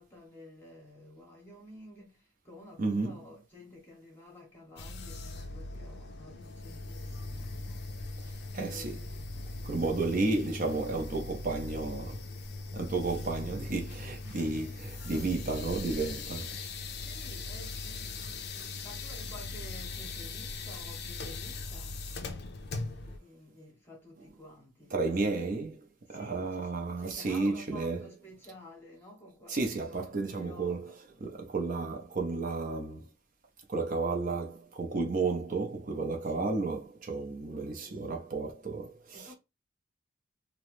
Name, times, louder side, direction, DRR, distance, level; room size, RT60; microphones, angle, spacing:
voice 1, 0.0-8.2 8.6-10.1 17.0-22.0 23.0-24.9 26.1-26.7 27.0-30.9 36.3-36.5 39.1-39.3, left 1 dB, 10° left, 0.8 m, -52 dB
voice 2, 2.8-3.2 8.5-9.0 9.6-12.2 12.7-16.6 24.9-28.0 29.5-30.9 31.2-33.0 33.7-39.3, right 3 dB, 40° right, 0.5 m, -32 dB
sound 1, 4.8-23.2, left 3 dB, 55° left, 0.5 m, -40 dB
2.9 x 2.1 x 3.0 m
head